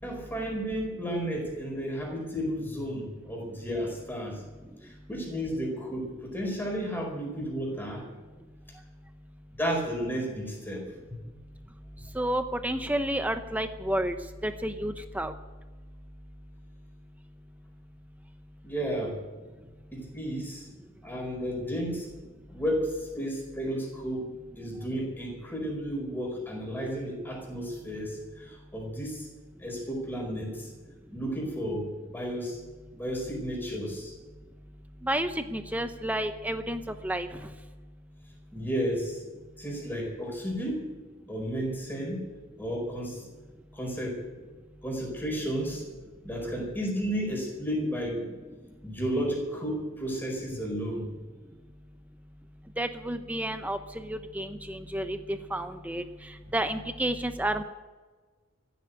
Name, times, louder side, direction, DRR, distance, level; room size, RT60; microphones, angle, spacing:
voice 1, 0.0-4.4 4.8-8.0 9.6-11.2 18.6-19.2 19.9-20.7 21.0-22.1 22.5-29.3 29.6-30.7 31.1-32.6 33.0-34.1 38.5-39.2 39.6-40.9 41.3-42.2 42.6-43.2 43.7-44.2 44.8-45.9 46.2-48.3 48.8-51.1, equal, 10° left, -1 dB, 5.0 m, -32 dB
voice 2, 12.1-14.1 14.4-15.3 35.0-37.5 52.8-57.6, right 1 dB, 5° right, 8 dB, 0.6 m, -31 dB
15.0 x 9.3 x 9.5 m, 1.3 s
head